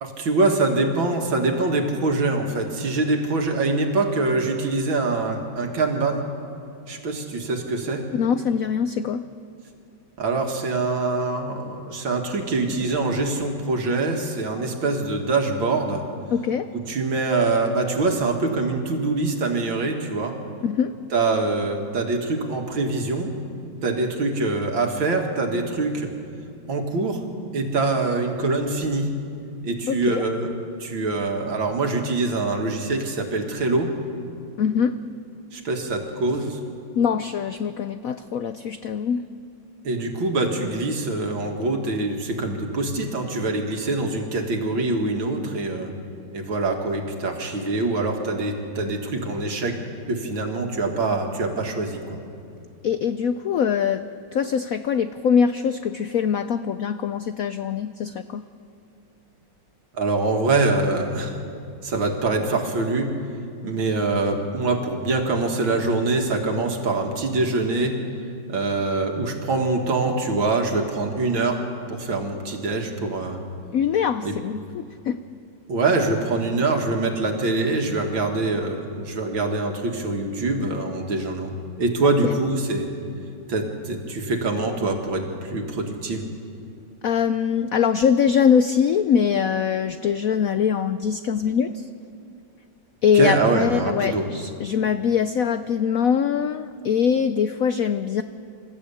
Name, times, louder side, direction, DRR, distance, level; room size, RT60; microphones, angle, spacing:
voice 1, 0.0-6.3 6.9-8.0 10.2-16.0 16.7-20.4 21.1-23.3 23.8-26.1 26.7-27.2 27.5-29.1 29.6-30.5 30.8-33.9 35.5-36.6 39.8-45.9 46.3-49.8 50.1-52.2 60.0-61.4 61.8-63.1 63.6-68.0 68.5-73.4 74.2-74.3 75.7-81.5 81.8-82.9 83.5-86.3 93.1-94.3, right 3 dB, 70° right, 3 dB, 2.8 m, -24 dB
voice 2, 8.1-9.2 16.3-16.7 20.6-20.9 29.9-30.2 34.6-35.0 37.0-39.2 52.8-54.0 54.3-58.4 73.7-75.2 82.2-82.4 87.0-91.8 93.0-98.2, left 7 dB, 90° left, 11 dB, 0.7 m, -23 dB
27.5 x 14.5 x 8.5 m, 2.6 s
omnidirectional pair, 2.2 m